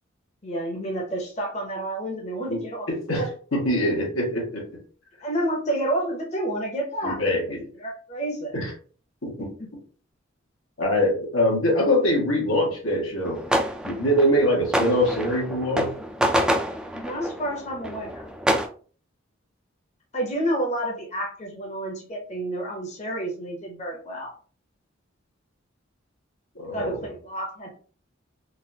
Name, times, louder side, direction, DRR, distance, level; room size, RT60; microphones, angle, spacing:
voice 1, 0.4-3.3 5.2-7.2 7.8-8.6 9.4-9.7 16.9-18.2 20.1-24.3 26.7-27.7, right 1 dB, 35° left, 0 dB, 0.8 m, -30 dB
voice 2, 2.9-3.2 3.5-4.8 7.0-7.6 8.5-8.7 9.2-9.5 10.8-13.4 13.8-15.9 26.5-27.0, left 1 dB, 85° left, -2 dB, 1.5 m, -23 dB
sound 1, 13.3-18.7, equal, 5° right, 0.3 m, -27 dB
3.9 x 2.5 x 2.7 m, 0.41 s
head